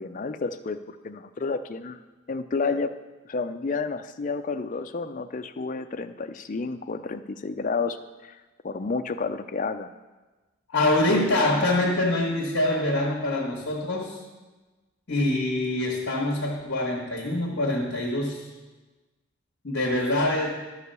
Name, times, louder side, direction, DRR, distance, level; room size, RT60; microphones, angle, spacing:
voice 1, 0.0-2.0 2.3-2.9 3.3-8.4 8.6-9.9, left 4 dB, 35° left, 9 dB, 0.4 m, -30 dB
voice 2, 10.7-14.2 15.1-18.5 19.6-20.5, left 1 dB, 55° left, -4 dB, 1.5 m, -25 dB
11.5 x 4.9 x 6.7 m, 1.2 s
head